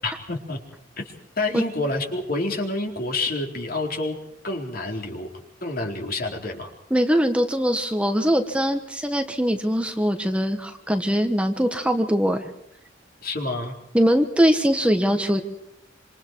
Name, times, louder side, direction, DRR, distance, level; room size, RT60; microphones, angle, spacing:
voice 1, 0.0-0.6 1.0-4.2 4.4-5.3 5.6-6.7 13.2-13.8, left 2 dB, 50° left, 2 dB, 4.2 m, -28 dB
voice 2, 6.9-12.5 13.9-15.4, equal, 5° right, 6 dB, 1.3 m, -22 dB
27.0 x 27.0 x 4.7 m, 0.77 s
head